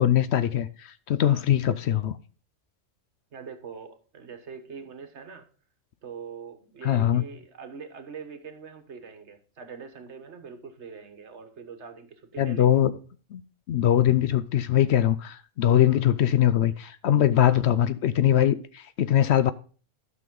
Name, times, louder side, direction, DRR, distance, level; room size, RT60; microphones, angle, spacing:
voice 1, 0.0-2.2 6.8-7.2 12.4-12.9 13.3-13.4 13.7-19.5, left 11 dB, 65° left, 0.8 m, -22 dB
voice 2, 3.3-5.5 6.0-12.8 15.9-16.0 17.4-17.6, right 6 dB, 60° right, 1.5 m, -43 dB
12.0 x 6.1 x 3.7 m
omnidirectional pair, 1.3 m